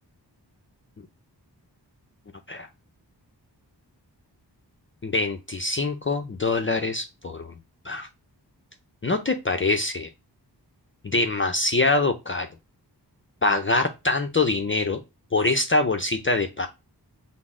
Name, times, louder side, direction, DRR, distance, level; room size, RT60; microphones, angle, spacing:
voice 1, 5.0-7.5 7.8-8.1 9.0-10.1 11.0-12.5 13.4-15.0 15.3-16.7, left 2 dB, 30° left, 5 dB, 0.5 m, -24 dB
6.0 x 2.0 x 3.5 m, 0.25 s
wide cardioid pair, 75°, 42 cm